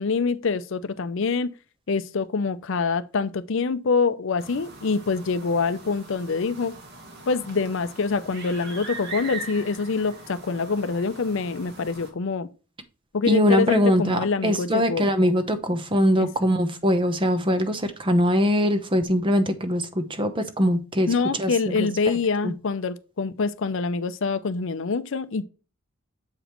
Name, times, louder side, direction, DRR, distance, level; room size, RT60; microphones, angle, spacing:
voice 1, 0.0-1.5 1.9-6.8 7.3-12.5 13.1-15.1 16.2-16.3 21.1-25.4, left 4 dB, 65° left, 0.6 m, -25 dB
sound 1, 4.4-12.1, right 3 dB, 50° right, 1.6 m, -41 dB
voice 2, 13.3-21.1 21.4-21.9 22.4-22.5, equal, 25° right, 0.8 m, -22 dB
7.5 x 5.0 x 3.0 m
head